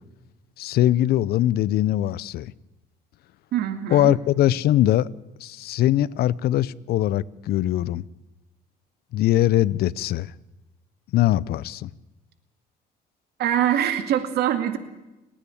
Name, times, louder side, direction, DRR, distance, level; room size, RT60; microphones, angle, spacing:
voice 1, 0.6-2.5 3.9-5.1 5.4-8.0 9.1-10.3 11.1-11.9, left 13 dB, 70° left, 0.6 m, -21 dB
voice 2, 3.5-4.1 13.4-14.8, right 10 dB, 70° right, 2.2 m, -23 dB
30.0 x 10.0 x 8.6 m
cardioid pair, 110°, 17 cm